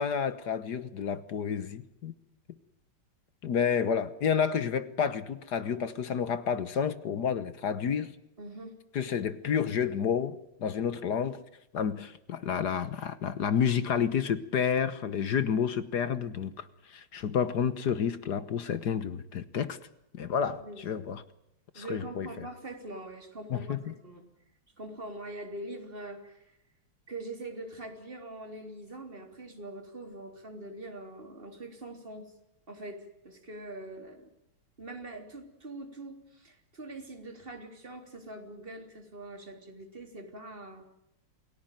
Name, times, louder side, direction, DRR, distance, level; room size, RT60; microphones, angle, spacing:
voice 1, 0.0-2.1 3.4-8.1 8.9-11.4 11.7-19.8 20.1-21.2 21.7-22.3 23.5-23.9, left 7 dB, 55° left, 13 dB, 1.6 m, -30 dB
voice 2, 8.4-8.7 20.6-20.8 21.7-24.2 24.8-26.6 27.1-32.3 32.7-34.3 34.8-41.0, right 2 dB, 25° right, 4 dB, 3.7 m, -43 dB
28.5 x 17.5 x 9.2 m, 0.83 s
omnidirectional pair, 2.2 m